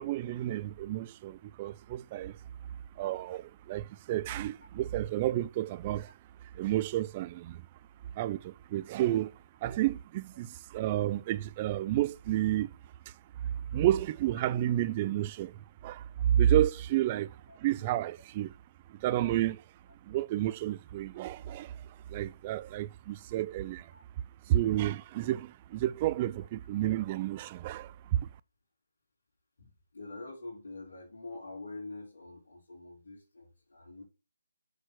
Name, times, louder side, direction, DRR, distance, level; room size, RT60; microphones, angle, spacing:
voice 1, 0.0-2.3 3.0-6.1 6.6-7.6 8.2-9.3 9.6-12.7 13.7-15.5 15.8-16.0 16.3-17.3 17.6-18.5 19.0-19.6 20.1-21.7 22.1-23.8 24.5-28.2, right 13 dB, 25° right, 0.5 m, -30 dB
voice 2, 29.6-34.0, left 2 dB, 65° left, 3.8 m, -46 dB
7.0 x 6.4 x 6.2 m
figure-of-eight pair, 150°, 0 cm